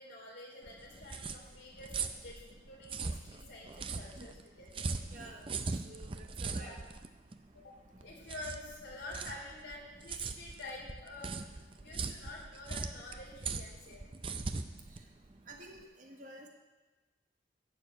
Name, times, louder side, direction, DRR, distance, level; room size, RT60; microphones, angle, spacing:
voice 1, 0.0-5.1 6.5-6.8 7.5-14.0, left 2 dB, 80° left, -3 dB, 3.8 m, -48 dB
sound 1, 0.6-15.8, right 4 dB, 30° right, 0.5 m, -40 dB
voice 2, 5.1-5.4 5.8-6.8 14.9-15.0 15.5-16.5, right 2 dB, 45° right, 2 dB, 1.3 m, -51 dB
12.0 x 4.6 x 8.5 m, 1.2 s
head